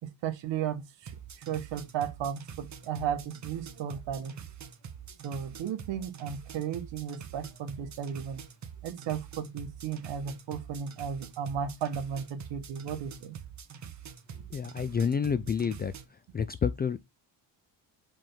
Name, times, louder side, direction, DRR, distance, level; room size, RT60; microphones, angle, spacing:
voice 1, 0.0-1.1 1.5-4.4 5.2-8.4 8.8-13.3 14.4-14.5, right 8 dB, 70° right, 1.5 m, -35 dB
sound 1, 1.0-16.0, right 7 dB, 40° right, 1.1 m, -45 dB
voice 2, 14.5-15.9 16.3-17.0, left 6 dB, 25° left, 0.3 m, -29 dB
5.3 x 3.4 x 5.6 m
cardioid pair, 115°, 45 cm